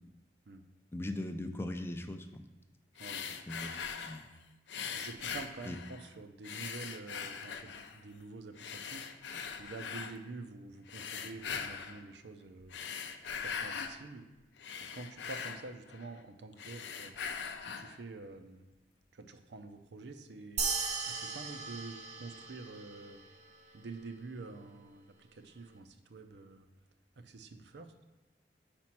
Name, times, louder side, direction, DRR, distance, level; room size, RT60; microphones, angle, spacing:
voice 1, 0.9-2.4 3.3-3.7 4.0-4.3 5.7-5.8, left 1 dB, 15° left, 6 dB, 0.4 m, -39 dB
sound 1, 3.0-4.3 4.7-6.1 6.4-8.0 8.6-10.2 10.9-12.0 12.6-14.0 14.4-16.2 16.5-18.0, left 6 dB, 80° left, 0.5 m, -41 dB
voice 2, 4.9-9.1 9.6-12.8 13.4-14.3 14.8-17.2 17.6-18.7 19.1-20.7 21.1-23.2 23.7-26.7 27.2-27.9, right 3 dB, 75° right, 7 dB, 0.5 m, -47 dB
sound 2, 20.6-23.3, right 4 dB, 40° right, 0.7 m, -37 dB
5.2 x 4.4 x 5.9 m, 1.1 s
head